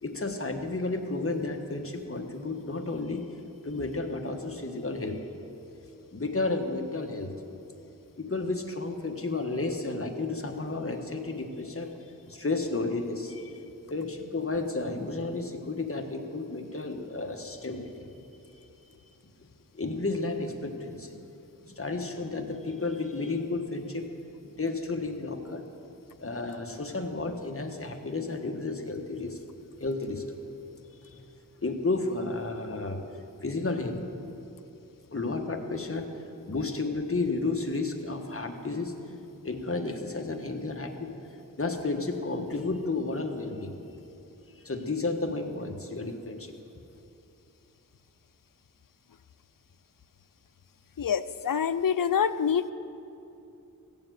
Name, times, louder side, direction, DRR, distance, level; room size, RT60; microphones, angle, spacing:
voice 1, 0.0-3.3 3.6-5.2 6.1-7.3 8.2-11.9 12.3-18.2 19.7-21.2 21.6-24.1 24.4-25.6 26.2-29.4 29.8-30.3 31.0-31.2 31.6-33.0 33.4-34.3 35.1-36.1 36.5-39.0 39.4-43.7 44.6-46.5, left 3 dB, 40° left, 4 dB, 1.3 m, -32 dB
voice 2, 51.0-52.7, left 7 dB, 70° left, 13 dB, 0.5 m, -26 dB
15.5 x 7.0 x 9.3 m, 2.8 s
wide cardioid pair, 55°, 34 cm